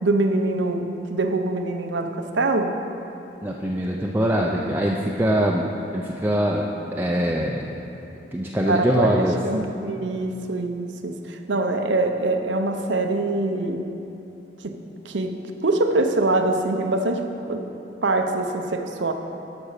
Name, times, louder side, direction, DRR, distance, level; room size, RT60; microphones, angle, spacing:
voice 1, 0.0-2.8 8.7-13.8 14.6-14.8 15.0-15.3 15.6-17.6 18.0-19.1, right 2 dB, 90° right, 6 dB, 0.8 m, -24 dB
voice 2, 3.4-5.7 5.9-7.7 8.3-9.4, equal, 10° right, -2 dB, 0.5 m, -23 dB
12.0 x 6.2 x 6.6 m, 2.9 s
head